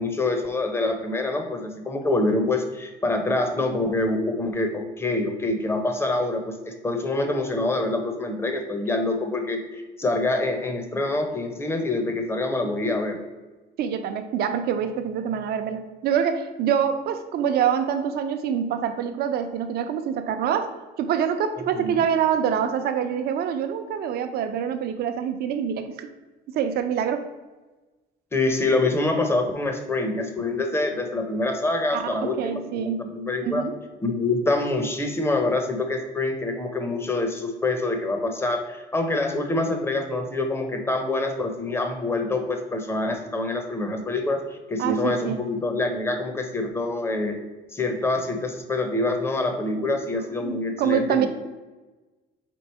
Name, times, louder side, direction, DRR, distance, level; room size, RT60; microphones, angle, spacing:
voice 1, 0.0-13.2 21.8-22.0 28.3-33.6 34.0-44.4 44.7-47.4 47.7-51.3, left 2 dB, 15° left, 5 dB, 0.7 m, -26 dB
voice 2, 13.8-26.1 26.5-27.3 31.9-33.0 33.4-33.7 44.8-45.4 49.7-49.8 50.1-51.3, right 8 dB, 65° right, 8 dB, 0.7 m, -26 dB
4.6 x 3.8 x 5.5 m, 1.2 s
cardioid pair, 155°, 17 cm